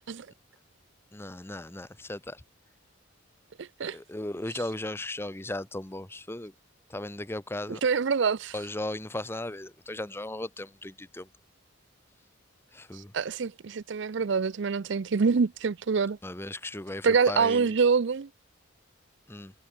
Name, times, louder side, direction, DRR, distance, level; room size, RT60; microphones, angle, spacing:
voice 1, 1.1-2.4 3.9-6.5 6.9-7.8 8.5-11.3 12.7-13.1 16.2-17.8 19.3-19.5, left 1 dB, 10° left, 0.8 m, -36 dB
voice 2, 3.6-4.0 7.7-8.5 13.1-16.2 17.0-18.3, right 5 dB, 60° right, 0.5 m, -25 dB
head